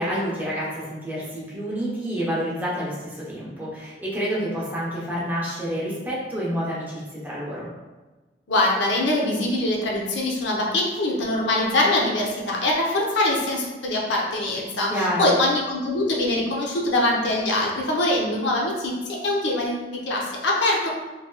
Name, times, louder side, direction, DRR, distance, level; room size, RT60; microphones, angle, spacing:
voice 1, 0.0-7.7 14.9-15.4, equal, 10° right, -7 dB, 0.7 m, -28 dB
voice 2, 8.5-20.9, left 1 dB, 80° left, -2 dB, 0.6 m, -23 dB
3.1 x 2.8 x 2.2 m, 1.2 s
head